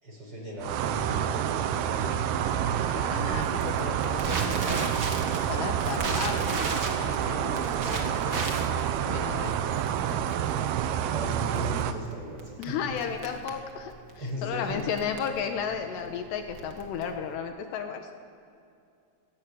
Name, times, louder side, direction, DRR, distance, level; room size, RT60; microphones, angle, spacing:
voice 1, 0.0-2.3 9.3-9.6 11.1-13.0 14.2-14.8, right 1 dB, 25° right, -1 dB, 5.3 m, -37 dB
sound 1, 0.6-11.9, right 9 dB, 75° right, 2.5 m, -28 dB
voice 2, 2.7-5.0 5.5-6.7 7.0-8.5 9.1-10.3 12.6-13.9 14.4-18.1, left 7 dB, 75° left, 6 dB, 3.2 m, -34 dB
Crackle, 3.2-17.4, right 3 dB, 50° right, 1.3 m, -37 dB
29.5 x 15.0 x 9.4 m, 2.5 s
omnidirectional pair, 5.2 m